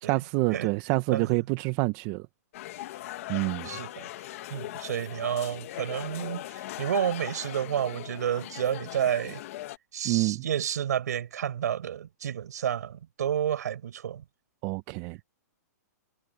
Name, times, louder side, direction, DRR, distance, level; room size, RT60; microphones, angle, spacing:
voice 1, 0.0-2.3 3.3-3.7 10.0-10.4 14.6-15.2, right 24 dB, 35° right, 0.9 m, -27 dB
sound 1, 2.5-9.8, left 16 dB, 55° left, 1.4 m, -39 dB
voice 2, 3.6-4.1 4.5-9.4 9.9-14.2, right 9 dB, 75° right, 5.8 m, -30 dB
hypercardioid pair, 140°, 9 cm